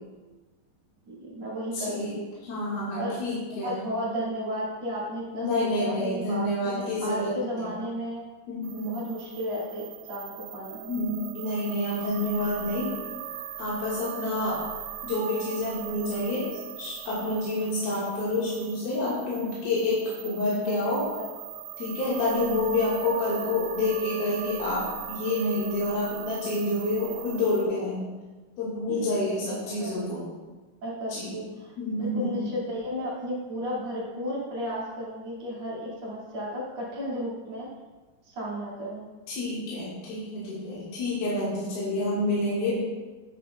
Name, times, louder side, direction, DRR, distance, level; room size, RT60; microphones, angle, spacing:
voice 1, 1.1-2.3 3.0-3.2 3.6-8.3 8.8-10.9 17.2-17.3 20.6-20.7 21.2-21.3 22.6-22.8 28.9-29.4 29.8-30.0 30.8-37.7 38.2-39.1, equal, 50° right, -7 dB, 3.4 m, -34 dB
voice 2, 1.7-2.1 2.4-3.8 5.3-7.3 7.6-7.7 8.5-9.0 10.9-12.9 13.6-14.6 15.0-21.0 21.8-28.1 28.6-30.2 31.1-31.3 31.8-32.4 39.3-42.8, left 2 dB, 85° left, -9 dB, 3.7 m, -28 dB
sound 1, 8.6-27.7, right 11 dB, 85° right, 2.4 m, -40 dB
9.8 x 9.2 x 2.4 m, 1.3 s
omnidirectional pair, 4.2 m